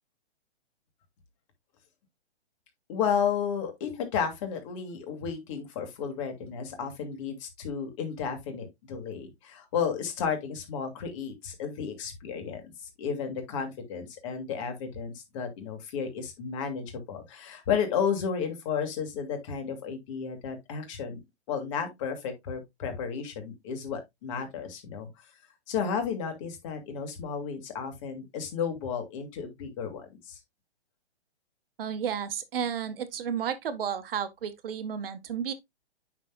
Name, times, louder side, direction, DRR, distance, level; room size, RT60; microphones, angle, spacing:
voice 1, 2.9-12.7 13.0-21.2 21.5-25.1 25.7-30.4, left 7 dB, 30° left, 2.0 m, -33 dB
voice 2, 31.8-35.5, right 8 dB, 55° right, 1.3 m, -32 dB
8.8 x 6.0 x 2.3 m
hypercardioid pair, 160°, 34 cm